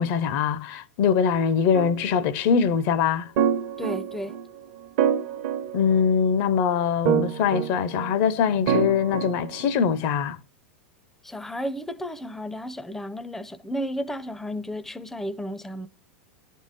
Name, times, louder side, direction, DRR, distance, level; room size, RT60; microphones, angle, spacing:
voice 1, 0.0-3.3 5.7-10.4, left 7 dB, 55° left, 0.6 m, -23 dB
sound 1, 1.7-2.3 3.4-4.4 5.0-6.4 7.1-8.1 8.7-9.8, right 8 dB, 60° right, 0.9 m, -26 dB
voice 2, 3.8-4.4 11.2-15.9, equal, 5° left, 0.5 m, -33 dB
10.5 x 3.7 x 4.1 m
hypercardioid pair, 105°, 6 cm